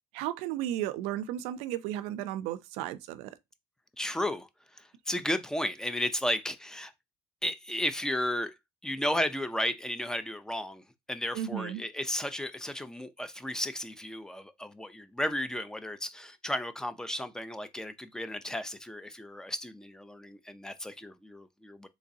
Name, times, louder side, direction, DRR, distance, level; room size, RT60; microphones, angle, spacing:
voice 1, 0.1-3.4 11.3-11.8, right 12 dB, 80° right, 0.4 m, -34 dB
voice 2, 4.0-6.9 7.4-8.5 8.8-21.9, left 1 dB, 5° left, 0.4 m, -34 dB
3.7 x 3.1 x 2.6 m
cardioid pair, 120°, 10 cm